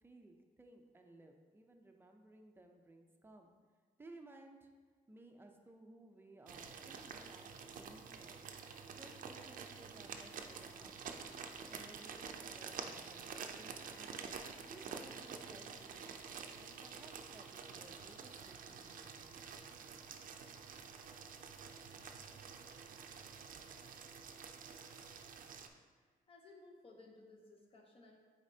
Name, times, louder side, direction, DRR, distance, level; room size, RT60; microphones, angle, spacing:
voice 1, 0.0-3.5 4.0-4.7 5.1-8.4 9.0-11.0 11.7-14.2 14.7-16.2 16.6-19.4, right 2 dB, 15° right, 3 dB, 0.5 m, -59 dB
sound 1, 6.5-25.7, right 6 dB, 65° right, 0.5 m, -49 dB
voice 2, 26.0-28.2, left 2 dB, 40° left, 1 dB, 0.8 m, -59 dB
8.4 x 4.2 x 2.7 m, 1.5 s
wide cardioid pair, 150°, 15 cm